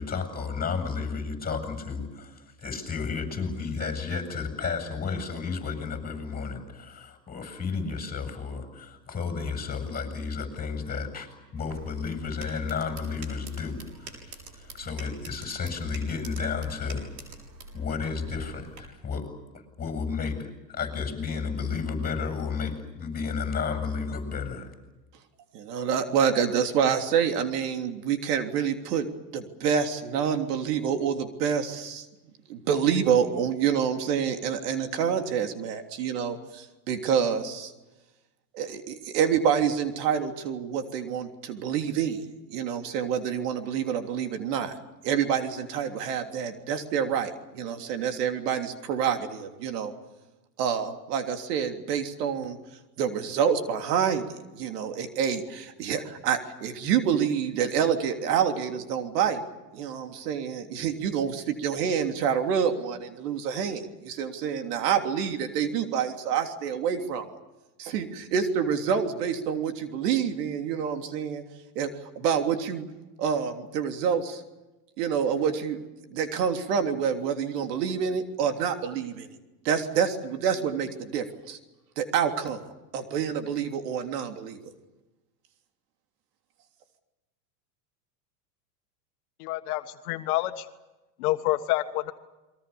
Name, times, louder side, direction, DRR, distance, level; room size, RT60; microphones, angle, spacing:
voice 1, 0.0-11.3 11.5-17.1 17.7-19.3 19.8-24.7, left 5 dB, 20° left, 6 dB, 7.7 m, -32 dB
sound 1, 11.6-18.8, right 4 dB, 90° right, 7.4 m, -46 dB
voice 2, 25.5-29.1 29.3-32.1 32.5-37.7 38.5-42.2 42.5-44.8 45.0-49.9 50.6-52.6 53.0-59.4 59.7-67.3 67.8-71.4 71.7-71.9 72.1-72.8 73.2-74.4 75.0-75.8 76.1-79.3 79.6-81.6 82.0-82.7 82.9-84.6, right 7 dB, 70° right, 6 dB, 3.4 m, -27 dB
voice 3, 89.4-90.6 91.2-92.1, left 16 dB, 65° left, 8 dB, 1.8 m, -28 dB
29.5 x 23.0 x 7.1 m, 1.1 s
hypercardioid pair, 110°, 48 cm